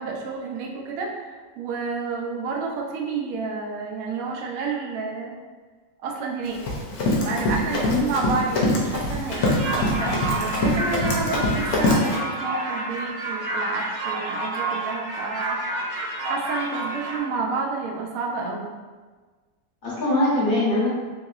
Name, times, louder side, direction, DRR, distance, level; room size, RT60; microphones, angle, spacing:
voice 1, 0.0-5.4 6.0-6.6 7.2-15.6 16.2-18.7, right 4 dB, 70° right, 0 dB, 0.8 m, -30 dB
Run, 6.5-12.2, left 1 dB, 65° left, 1.0 m, -24 dB
voice 2, 7.8-8.4 19.8-20.9, left 2 dB, 40° left, -8 dB, 0.8 m, -23 dB
sound 1, 9.3-17.2, right 2 dB, 90° right, 1.3 m, -29 dB
3.1 x 2.7 x 2.4 m, 1.4 s
omnidirectional pair, 1.9 m